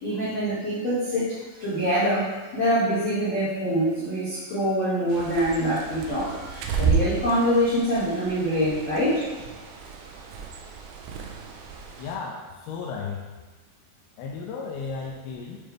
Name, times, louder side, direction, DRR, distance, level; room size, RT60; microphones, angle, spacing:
voice 1, 0.0-9.2, equal, 65° left, -12 dB, 1.6 m, -25 dB
Bird, 5.1-12.2, right 5 dB, 85° right, 2.7 m, -32 dB
voice 2, 12.0-13.3 14.2-15.6, left 5 dB, 85° left, -2 dB, 2.3 m, -34 dB
8.7 x 3.2 x 3.4 m, 1.2 s
omnidirectional pair, 5.0 m